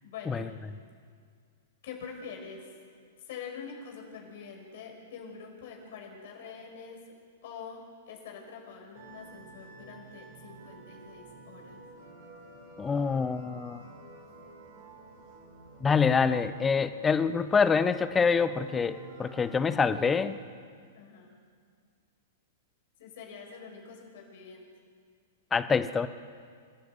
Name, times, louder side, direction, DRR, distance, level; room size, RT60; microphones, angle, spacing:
voice 1, 0.0-0.5 1.8-2.7 3.3-7.0 7.4-7.8 8.1-11.8 20.9-21.4 23.0-24.7, left 6 dB, 60° left, 1 dB, 5.9 m, -45 dB
sound 1, 8.9-20.4, right 4 dB, 50° right, 5.5 m, -50 dB
voice 2, 12.8-13.8 15.8-20.4 25.5-26.1, left 5 dB, 15° left, 13 dB, 1.0 m, -26 dB
25.5 x 13.0 x 8.0 m, 2.1 s
hypercardioid pair, 115°, 0 cm